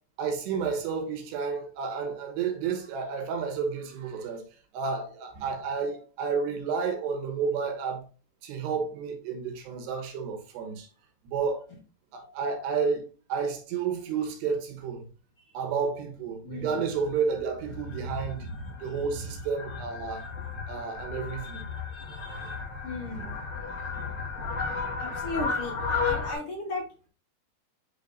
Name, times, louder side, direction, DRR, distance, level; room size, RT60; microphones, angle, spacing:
voice 1, 0.2-8.0 8.4-10.9 11.2-11.7 12.1-15.1 15.5-18.5 18.8-20.3 20.7-21.7 23.1-23.3, right 5 dB, 75° right, 3.3 m, -31 dB
voice 2, 16.4-16.8 18.4-18.6 21.4-21.6 21.9-23.3 25.0-25.7 26.0-26.8, left 2 dB, 60° left, 1.5 m, -37 dB
Fowl, 16.9-26.3, left 4 dB, 40° left, 2.8 m, -34 dB
10.0 x 3.8 x 2.6 m
omnidirectional pair, 5.1 m